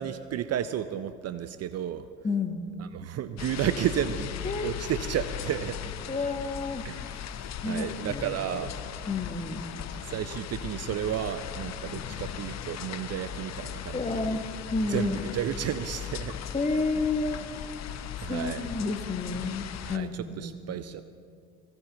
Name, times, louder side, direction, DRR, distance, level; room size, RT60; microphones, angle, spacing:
voice 1, 0.0-2.1 2.8-4.3 4.6-5.9 6.8-8.7 10.0-14.3 14.9-16.4 16.7-16.9 18.2-18.6 19.9-21.0, right 10 dB, 40° right, 12 dB, 0.6 m, -32 dB
voice 2, 2.2-2.7 4.4-4.8 6.1-6.9 7.6-8.3 9.1-9.7 11.9-12.0 13.9-14.4 14.7-15.4 16.5-17.4 18.2-20.6, left 3 dB, 20° left, 7 dB, 1.2 m, -30 dB
sound 1, 3.4-20.0, left 9 dB, 40° left, 0.8 m, -38 dB
17.0 x 16.0 x 3.9 m, 2.1 s
hypercardioid pair, 60°, 39 cm